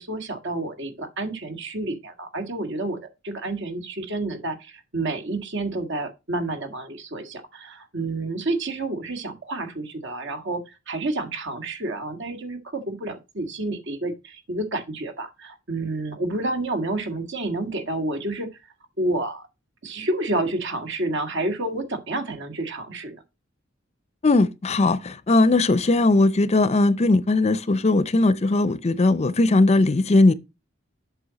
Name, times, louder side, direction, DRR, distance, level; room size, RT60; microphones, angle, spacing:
voice 1, 0.0-18.5 19.0-19.5 19.8-23.2, right 2 dB, 60° right, 1.8 m, -29 dB
voice 2, 24.2-30.3, left 2 dB, 30° left, 0.5 m, -19 dB
7.8 x 6.1 x 4.0 m
head